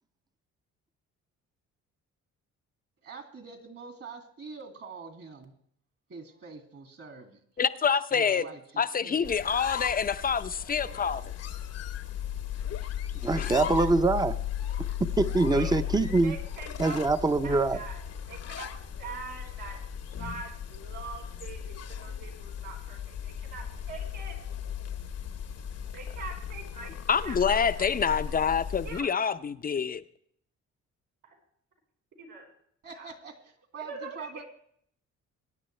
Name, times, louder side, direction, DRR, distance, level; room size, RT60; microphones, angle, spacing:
voice 1, 3.0-5.5 6.1-7.4 8.1-9.2 32.8-34.4, right 5 dB, 50° right, 2.3 m, -45 dB
voice 2, 7.6-8.5 8.8-11.2 13.4-13.7 27.1-30.0, left 6 dB, 30° left, 0.6 m, -27 dB
sound 1, 9.2-29.0, left 9 dB, 55° left, 0.9 m, -36 dB
voice 3, 13.2-14.3 15.0-16.3 16.8-17.8, right 3 dB, 15° right, 0.7 m, -24 dB
voice 4, 16.2-17.0 17.4-18.0 18.3-18.7 19.0-19.8 20.2-24.3 25.9-26.9 27.2-27.6 28.8-29.1 31.2-31.3 32.2-32.5 32.9-33.1 33.8-34.3, right 4 dB, 85° right, 5.0 m, -43 dB
21.5 x 9.6 x 3.3 m
cardioid pair, 90°, 30 cm